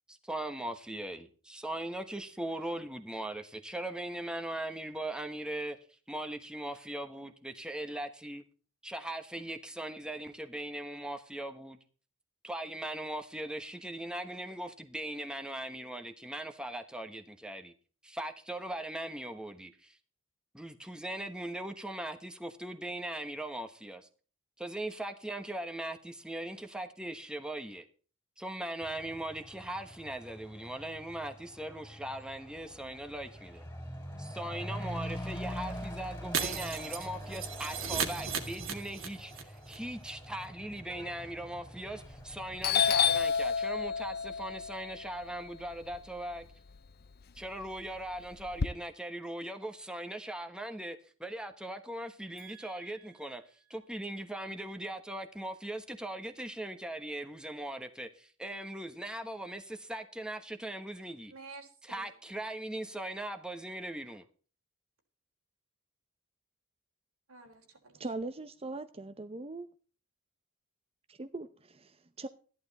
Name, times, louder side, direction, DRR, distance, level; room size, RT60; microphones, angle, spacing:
voice 1, 0.1-5.8 6.1-8.4 8.8-11.8 12.4-17.7 18.0-20.0 20.5-24.1 24.6-27.8 28.4-33.6 34.2-46.4 47.3-53.4 53.7-58.1 58.4-61.3 61.9-64.2, right 1 dB, 5° right, 1.2 m, -39 dB
Truck / Accelerating revving vroom, 28.8-43.2, equal, 15° left, 3.1 m, -44 dB
Shatter, 36.3-39.4 39.7-39.8 40.1-40.2, right 6 dB, 65° right, 2.1 m, -35 dB
Doorbell, 42.0-42.3 42.6-46.8 47.1-48.7, left 7 dB, 45° left, 0.5 m, -30 dB
voice 2, 52.4-53.4 61.3-62.1 67.3-68.1, right 4 dB, 90° right, 3.9 m, -52 dB
voice 3, 68.0-69.7 71.1-72.3, right 2 dB, 30° right, 0.7 m, -40 dB
14.0 x 11.0 x 4.1 m
head